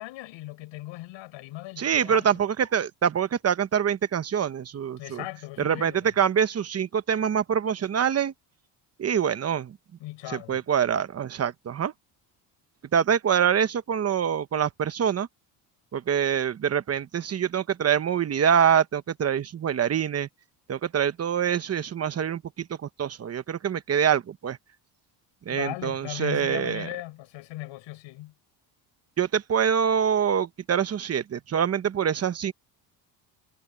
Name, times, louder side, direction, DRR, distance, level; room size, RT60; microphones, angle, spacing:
voice 1, 0.0-2.4 5.0-6.1 10.0-10.6 25.5-28.3, left 17 dB, 80° left, 5.5 m, -38 dB
voice 2, 1.8-5.2 5.6-8.3 9.0-9.8 10.3-11.9 12.9-15.3 15.9-20.3 20.7-22.7 23.0-24.6 25.5-26.9 29.2-32.5, right 8 dB, 35° right, 1.0 m, -25 dB
cardioid pair, 125°, 45 cm